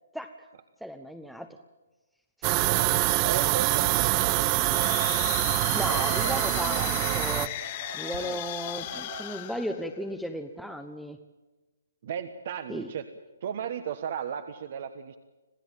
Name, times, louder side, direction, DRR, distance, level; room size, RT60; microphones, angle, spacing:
voice 1, 0.8-1.6 5.7-7.5 7.9-11.2 12.7-12.9, equal, ahead, 5 dB, 0.9 m, -35 dB
sound 1, 2.4-7.5, right 18 dB, 30° right, 0.7 m, -25 dB
voice 2, 3.2-5.2 5.9-6.3 8.1-8.4 12.0-13.1 13.4-15.2, right 8 dB, 50° right, 9 dB, 1.3 m, -36 dB
sound 2, 4.0-9.2, right 5 dB, 65° right, 6.0 m, -45 dB
sound 3, 4.4-10.4, left 14 dB, 35° left, 1.1 m, -37 dB
27.0 x 16.0 x 9.0 m, 1.2 s
hypercardioid pair, 140°, 0 cm